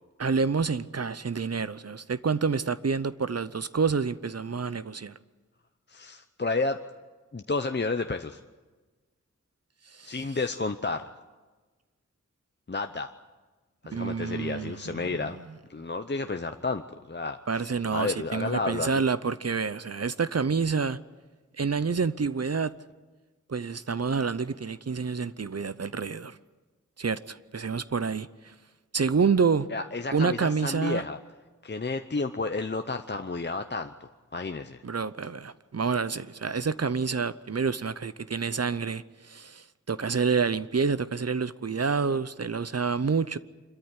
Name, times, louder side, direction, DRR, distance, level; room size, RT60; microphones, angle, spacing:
voice 1, 0.2-5.2 9.9-10.1 13.9-15.4 17.5-21.0 21.6-22.7 23.5-26.4 27.0-28.5 28.9-29.7 30.1-31.0 34.8-43.4, right 5 dB, 55° right, 0.7 m, -28 dB
voice 2, 5.9-6.8 7.3-8.4 10.0-11.1 12.7-13.1 13.8-15.4 15.7-16.8 17.1-19.0 29.7-31.2 31.6-34.8, left 3 dB, 35° left, 0.8 m, -31 dB
25.5 x 13.5 x 9.7 m
wide cardioid pair, 60°, 30 cm